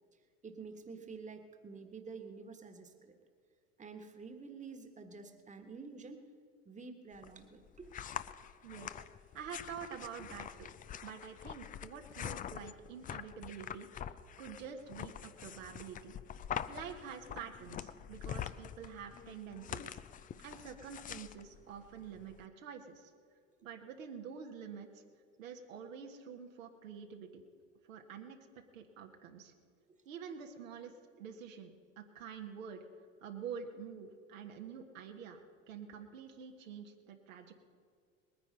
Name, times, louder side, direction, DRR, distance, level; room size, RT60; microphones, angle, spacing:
voice 1, 0.4-3.1 3.8-6.3 6.6-7.9 10.1-10.2, right 4 dB, 20° right, 6 dB, 1.5 m, -49 dB
sound 1, 7.1-22.4, left 9 dB, 20° left, 0.4 m, -45 dB
voice 2, 8.6-8.9 9.3-10.7 11.0-16.2 16.7-23.1 23.6-25.0 25.4-27.4 27.9-29.5 30.0-32.8 33.2-35.4 35.7-37.6, right 7 dB, 70° right, 3 dB, 1.5 m, -47 dB
20.0 x 9.8 x 5.3 m, 2.2 s
figure-of-eight pair, 70°, 40 cm